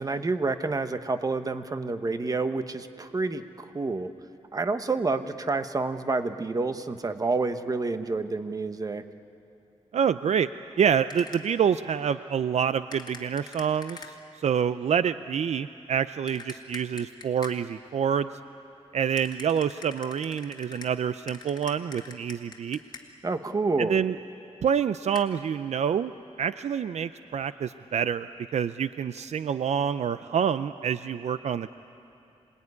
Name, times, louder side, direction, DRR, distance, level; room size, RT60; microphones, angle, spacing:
voice 1, 0.0-4.1 4.5-9.0 23.2-24.0, right 3 dB, 30° right, 9 dB, 1.1 m, -28 dB
voice 2, 9.9-10.5 10.8-18.3 18.9-22.8 23.8-24.1 24.6-26.1 26.4-28.3 28.5-31.7, right 8 dB, 65° right, 12 dB, 0.5 m, -27 dB
sound 1, 11.1-11.6 12.9-14.4 16.3-17.8 19.2-23.3 25.1-25.2, left 4 dB, 35° left, 2.0 m, -46 dB
26.0 x 20.0 x 9.6 m, 2.8 s
wide cardioid pair, 125°, 12 cm